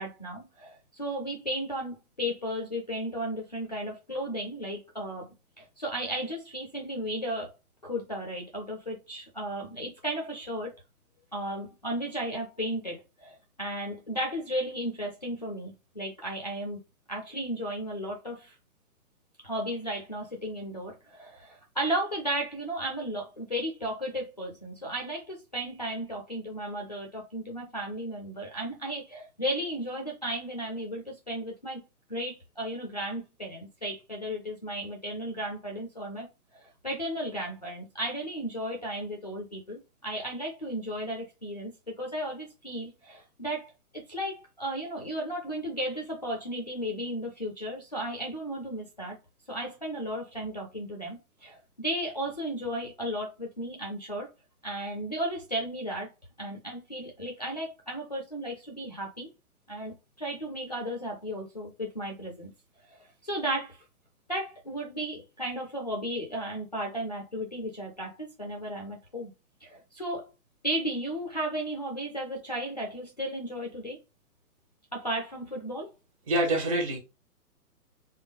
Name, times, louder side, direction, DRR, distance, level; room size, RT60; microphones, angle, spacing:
voice 1, 0.0-5.3 5.6-7.5 7.8-10.7 11.3-16.8 17.1-18.5 19.4-31.8 32.1-36.3 36.5-49.2 49.5-54.3 54.6-56.1 56.4-59.3 59.7-62.5 62.9-63.8 64.3-69.3 69.6-70.3 70.6-74.0 74.9-75.9, right 1 dB, 30° left, 0.4 m, -34 dB
voice 2, 76.3-77.0, right 1 dB, 25° right, 0.7 m, -26 dB
3.5 x 2.1 x 3.2 m
hypercardioid pair, 150°, 46 cm